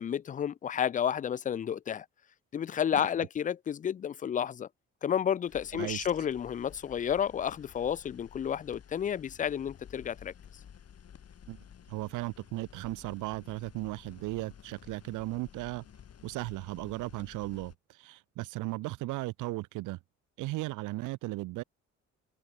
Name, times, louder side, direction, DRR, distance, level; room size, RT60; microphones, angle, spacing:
voice 1, 0.0-2.1 2.5-4.7 5.0-10.3, left 8 dB, 30° left, 0.3 m, -31 dB
sound 1, 5.5-17.7, left 8 dB, 55° left, 4.1 m, -53 dB
voice 2, 5.7-6.1 11.5-15.9 16.2-20.0 20.4-21.6, right 20 dB, 85° right, 0.5 m, -36 dB
cardioid pair, 90°, 30 cm